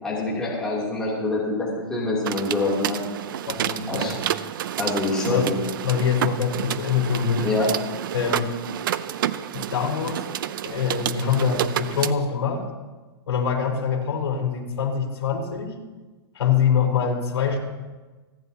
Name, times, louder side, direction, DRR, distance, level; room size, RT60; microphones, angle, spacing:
voice 1, 0.0-3.0 3.9-4.2 4.8-5.6 7.4-7.7, left 2 dB, 5° left, -7 dB, 2.9 m, -25 dB
sound 1, 2.2-12.1, right 11 dB, 50° right, 0.6 m, -29 dB
voice 2, 3.5-4.2 5.3-5.5 5.8-7.5 8.1-8.5 9.5-10.2 10.6-12.7 13.3-15.8 16.3-17.6, left 7 dB, 75° left, -1 dB, 4.2 m, -24 dB
29.5 x 10.5 x 2.9 m, 1.2 s
hypercardioid pair, 160°, 14 cm